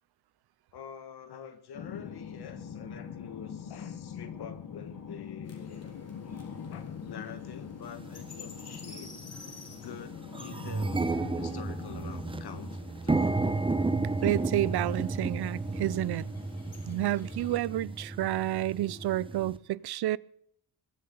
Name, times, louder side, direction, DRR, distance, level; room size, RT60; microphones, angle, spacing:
voice 1, 0.7-6.0 6.6-9.2 9.8-11.1 11.3-12.7 13.0-13.3, left 7 dB, 80° left, 1.8 m, -46 dB
sound 1, 1.7-12.8, left 7 dB, 55° left, 1.4 m, -43 dB
sound 2, 5.4-17.6, left 4 dB, 40° left, 3.8 m, -51 dB
sound 3, 8.0-8.1 8.9-9.1 9.5-9.6 9.9-19.6, right 3 dB, 15° right, 0.8 m, -32 dB
voice 2, 14.2-16.3 16.8-20.2, right 14 dB, 80° right, 0.6 m, -30 dB
22.0 x 7.7 x 7.0 m
wide cardioid pair, 160°, 38 cm